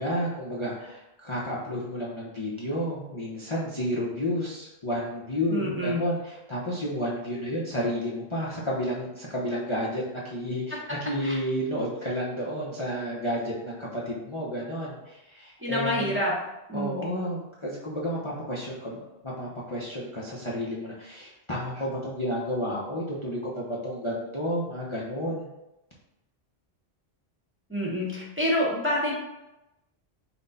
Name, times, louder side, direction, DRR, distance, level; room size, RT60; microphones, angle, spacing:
voice 1, 0.0-16.2 16.7-25.5, equal, 30° left, -6 dB, 0.7 m, -31 dB
voice 2, 5.5-6.0 11.2-11.4 15.6-16.3 16.7-17.1 27.7-29.2, left 1 dB, 10° right, -5 dB, 1.0 m, -27 dB
5.9 x 2.2 x 4.0 m, 0.95 s
omnidirectional pair, 1.1 m